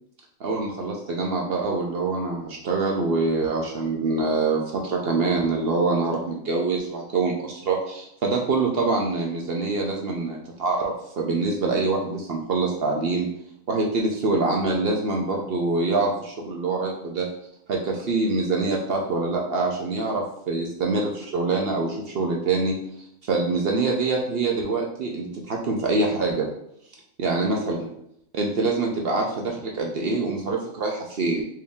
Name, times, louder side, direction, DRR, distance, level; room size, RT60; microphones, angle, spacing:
voice 1, 0.4-13.3 13.7-17.3 17.7-22.8 23.3-26.5 27.2-27.9 28.3-31.4, right 3 dB, 55° right, 0 dB, 0.7 m, -25 dB
4.6 x 2.7 x 3.5 m, 0.74 s
omnidirectional pair, 1.4 m